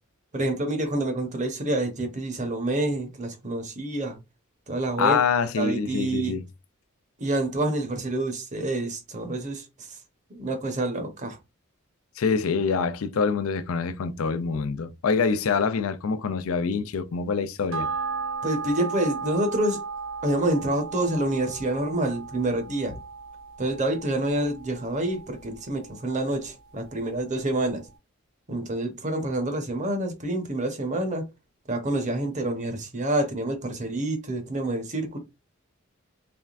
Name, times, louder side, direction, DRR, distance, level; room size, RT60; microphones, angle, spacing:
voice 1, 0.3-4.2 4.7-5.2 5.6-6.4 7.2-10.0 10.3-11.4 18.4-19.8 20.2-23.0 23.6-27.8 28.5-31.2 31.7-35.2, right 1 dB, 35° right, 0.9 m, -27 dB
voice 2, 5.0-6.4 12.2-17.9, left 5 dB, 85° left, 0.4 m, -25 dB
sound 1, 17.7-26.5 26.8-26.9, right 5 dB, 70° right, 1.0 m, -36 dB
3.5 x 3.2 x 2.5 m
head